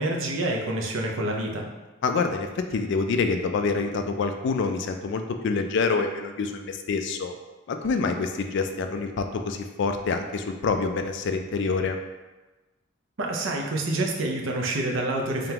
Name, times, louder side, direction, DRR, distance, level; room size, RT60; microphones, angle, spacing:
voice 1, 0.0-1.7 13.2-15.5, right 2 dB, 75° right, 0 dB, 0.6 m, -27 dB
voice 2, 2.0-7.3 7.7-12.0, left 4 dB, 60° left, 6 dB, 0.3 m, -26 dB
3.7 x 3.4 x 2.9 m, 1.2 s
head